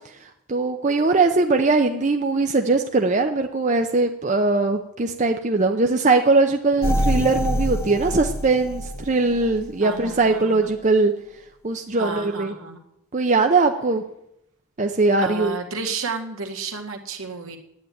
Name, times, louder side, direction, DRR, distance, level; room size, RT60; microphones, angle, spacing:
voice 1, 0.5-11.1 11.6-12.5 13.1-14.0 14.8-15.6, right 3 dB, 35° right, 5 dB, 0.6 m, -20 dB
sound 1, 6.8-9.7 10.1-10.2, equal, 10° left, 1.0 m, -25 dB
voice 2, 9.8-10.8 11.9-12.8 15.2-17.6, right 4 dB, 70° right, 3 dB, 1.7 m, -32 dB
9.4 x 8.8 x 9.0 m, 0.83 s
head